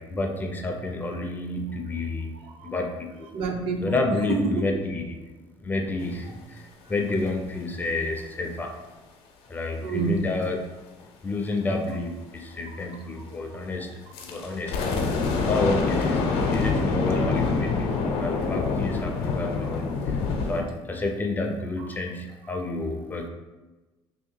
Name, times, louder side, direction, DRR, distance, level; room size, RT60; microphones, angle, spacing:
voice 1, 0.0-2.3 2.6-3.3 3.8-5.2 5.6-8.7 9.5-10.6 11.2-14.8 15.4-16.2 16.5-17.9 18.2-20.2 20.5-23.3, left 2 dB, 20° left, 2 dB, 0.4 m, -30 dB
voice 2, 2.4-2.8 3.3-4.0 4.3-4.7 9.8-10.2 12.7-12.8 13.2-13.4 17.6-17.7 21.8-21.9, right 4 dB, 70° right, 3 dB, 0.6 m, -29 dB
sound 1, 14.1-20.6, left 4 dB, 75° left, 0.6 m, -26 dB
3.0 x 2.8 x 4.4 m, 1.1 s
cardioid pair, 150°, 10 cm